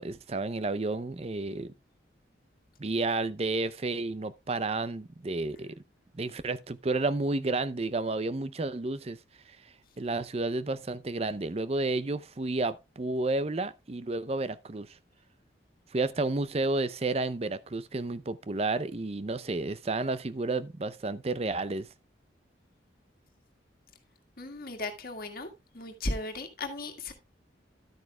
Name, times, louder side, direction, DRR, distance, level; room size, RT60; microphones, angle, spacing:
voice 1, 0.0-1.7 2.8-5.7 6.1-9.2 9.5-9.6 10.0-15.0 15.9-21.9, right 2 dB, 35° right, 0.6 m, -31 dB
voice 2, 24.4-25.5 25.7-27.1, left 2 dB, 50° left, 1.8 m, -36 dB
12.0 x 9.1 x 2.3 m
head